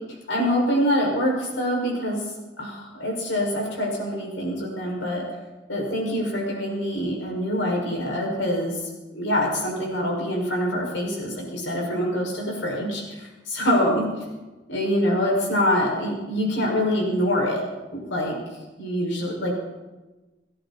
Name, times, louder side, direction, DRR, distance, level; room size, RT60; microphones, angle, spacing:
voice 1, 0.3-2.2 2.6-5.2 5.7-8.8 9.1-14.0 14.7-17.6 17.9-18.4 18.8-19.5, equal, 80° left, -1 dB, 6.1 m, -25 dB
29.5 x 11.0 x 4.4 m, 1.2 s
head